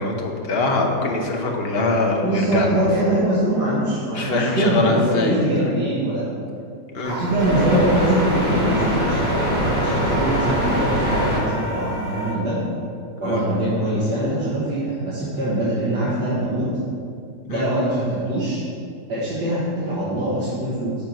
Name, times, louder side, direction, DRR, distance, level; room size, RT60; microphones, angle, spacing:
voice 1, 0.0-2.8 4.1-5.4 6.9-7.1 13.2-13.4 17.5-17.6, left 2 dB, 45° left, 1 dB, 0.9 m, -22 dB
voice 2, 2.2-6.2 7.1-12.6 13.2-16.7 17.5-18.6 19.1-21.0, right 1 dB, 90° right, -11 dB, 2.3 m, -23 dB
sound 1, 7.0-12.3, equal, 25° right, 2.3 m, -23 dB
7.0 x 4.5 x 6.5 m, 2.3 s
omnidirectional pair, 1.8 m